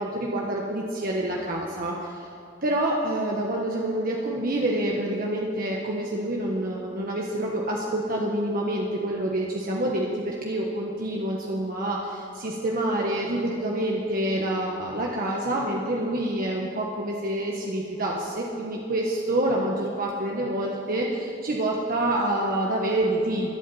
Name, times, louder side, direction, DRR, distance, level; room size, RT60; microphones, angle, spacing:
voice 1, 0.0-2.3 2.6-23.5, right 1 dB, 50° right, -2 dB, 1.3 m, -27 dB
23.0 x 8.5 x 4.2 m, 2.6 s
head